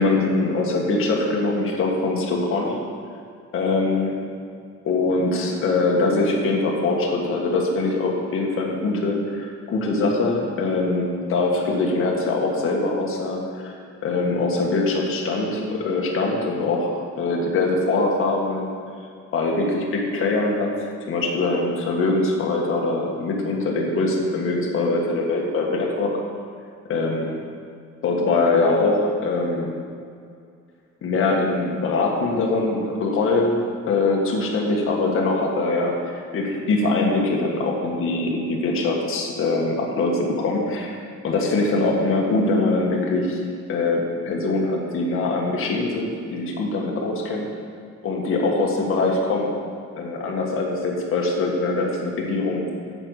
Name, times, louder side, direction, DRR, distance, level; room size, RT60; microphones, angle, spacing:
voice 1, 0.0-2.8 3.5-4.1 4.8-13.7 14.0-18.7 19.3-26.1 26.9-27.3 28.0-29.7 31.0-43.4 43.7-47.5 48.0-49.5 50.0-52.6, left 3 dB, 45° left, -1 dB, 1.6 m, -23 dB
8.7 x 7.9 x 6.5 m, 2.3 s
cardioid pair, 175°, 29 cm